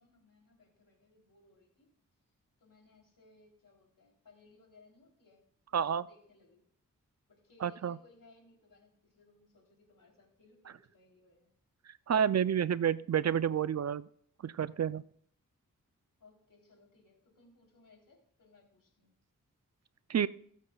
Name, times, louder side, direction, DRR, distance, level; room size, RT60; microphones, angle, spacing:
voice 1, 0.0-1.9 2.6-5.4 5.7-6.6 7.3-11.5 16.2-19.1, left 3 dB, 75° left, 0 dB, 3.5 m, -63 dB
voice 2, 5.7-6.1 7.6-8.0 11.9-14.1 14.4-15.0 20.1-20.3, right 8 dB, 50° right, 16 dB, 0.5 m, -29 dB
19.0 x 8.2 x 2.3 m, 0.64 s
cardioid pair, 50°, 33 cm